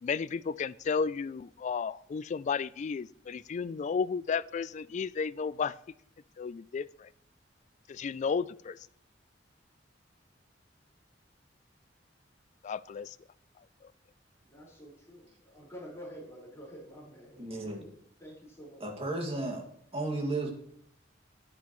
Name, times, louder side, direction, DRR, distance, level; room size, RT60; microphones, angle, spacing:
voice 1, 0.0-5.8 6.4-7.1 7.9-8.9 12.6-13.2 13.8-13.9, left 5 dB, 40° left, 19 dB, 0.3 m, -33 dB
voice 2, 14.5-17.5 17.7-19.1, equal, 15° left, -5 dB, 4.7 m, -49 dB
voice 3, 17.4-17.9 18.8-19.6 19.9-20.5, right 2 dB, 35° right, 1 dB, 2.1 m, -33 dB
10.5 x 9.6 x 3.1 m, 0.69 s
head